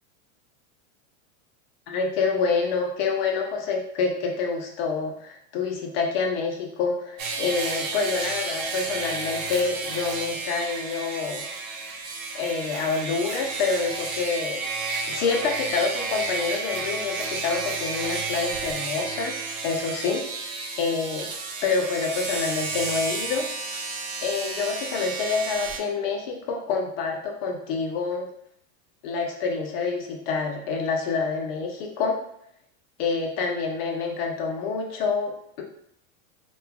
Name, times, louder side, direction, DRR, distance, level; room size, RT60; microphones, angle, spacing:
voice 1, 1.9-11.5 12.3-14.6 15.1-20.3 20.8-21.3 21.6-23.5 24.2-28.3 29.0-32.2 33.0-35.6, left 4 dB, 45° left, 2 dB, 0.5 m, -27 dB
sound 1, 7.2-25.8, right 3 dB, 80° right, 0.7 m, -32 dB
3.0 x 2.2 x 2.3 m, 0.71 s
supercardioid pair, 165°, 42 cm